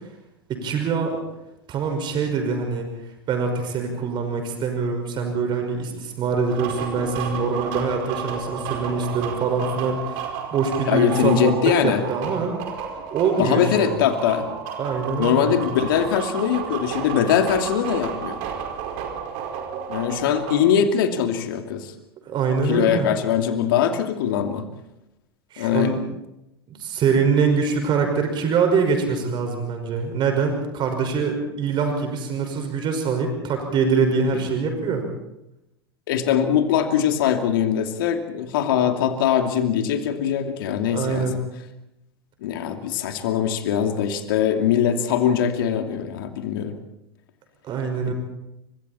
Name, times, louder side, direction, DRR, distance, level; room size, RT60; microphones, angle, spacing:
voice 1, 0.5-1.2 1.7-2.9 3.3-10.2 10.5-11.5 11.8-12.5 13.1-13.9 14.8-15.5 22.3-23.1 25.5-26.0 26.7-35.1 40.8-41.4 47.6-48.1, right 5 dB, 40° right, 4 dB, 5.4 m, -24 dB
sound 1, 6.5-20.6, right 7 dB, 55° right, 5.0 m, -32 dB
voice 2, 10.9-12.0 13.4-14.5 15.2-18.4 19.9-21.9 22.7-24.6 25.6-25.9 36.1-41.3 42.4-46.8 48.1-48.2, left 9 dB, 65° left, 6 dB, 2.7 m, -22 dB
29.5 x 25.0 x 4.4 m, 0.87 s
figure-of-eight pair, 80°, 13 cm